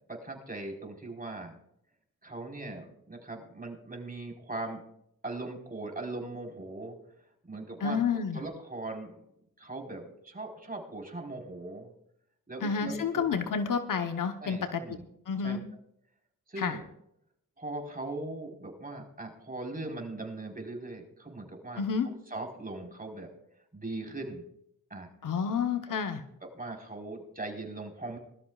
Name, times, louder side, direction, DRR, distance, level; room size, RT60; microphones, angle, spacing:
voice 1, 0.1-1.6 2.2-4.8 5.2-7.0 7.4-8.0 8.3-9.2 9.6-11.9 12.5-13.2 14.4-15.0 15.4-15.6 16.5-16.9 17.6-23.3 23.7-24.4 24.9-25.1 26.4-28.2, right 2 dB, 25° right, 2 dB, 4.4 m, -40 dB
voice 2, 7.8-8.4 12.6-14.8 15.3-15.6 16.6-16.8 21.8-22.1 25.2-26.2, left 6 dB, 65° left, 7 dB, 1.1 m, -30 dB
21.0 x 13.0 x 2.4 m, 0.75 s
cardioid pair, 55°, 34 cm